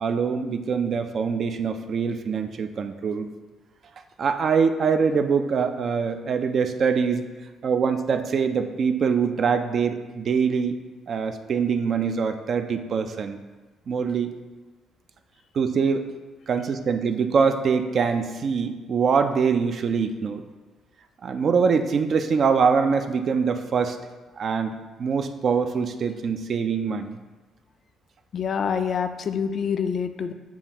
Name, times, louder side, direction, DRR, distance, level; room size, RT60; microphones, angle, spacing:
voice 1, 0.0-3.3 4.2-7.3 7.6-10.8 11.1-13.4 13.9-14.3 15.5-16.1 16.5-20.4 21.2-24.0 24.4-27.2, right 6 dB, 55° right, 8 dB, 0.3 m, -24 dB
voice 2, 28.3-30.3, left 7 dB, 55° left, 9 dB, 0.3 m, -26 dB
7.0 x 2.4 x 2.8 m, 1.3 s
supercardioid pair, 65°, 0 cm